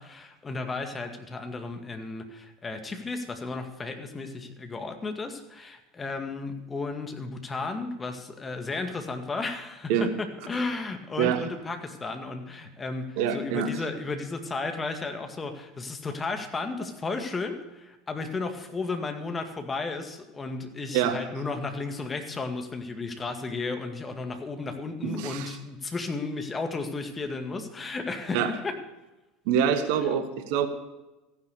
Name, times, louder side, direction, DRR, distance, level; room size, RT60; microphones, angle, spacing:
voice 1, 0.0-28.8 30.0-30.1, left 3 dB, 20° left, 6 dB, 2.1 m, -34 dB
voice 2, 13.2-13.7 20.9-21.2 25.0-25.5 28.3-28.5 29.5-30.7, right 8 dB, 60° right, 9 dB, 1.4 m, -25 dB
14.5 x 10.5 x 6.8 m, 1.0 s
figure-of-eight pair, 75°, 0 cm